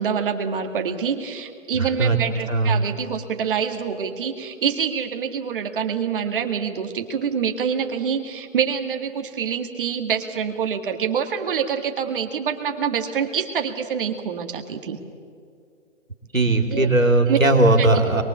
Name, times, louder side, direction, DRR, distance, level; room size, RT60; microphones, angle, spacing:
voice 1, 0.0-15.0 16.7-16.9 17.3-17.4 17.8-18.2, right 7 dB, 45° right, 5 dB, 2.1 m, -26 dB
voice 2, 2.5-2.8 16.3-18.2, right 2 dB, 90° right, 4 dB, 3.6 m, -18 dB
24.5 x 23.5 x 8.3 m, 2.4 s
figure-of-eight pair, 130°, 38 cm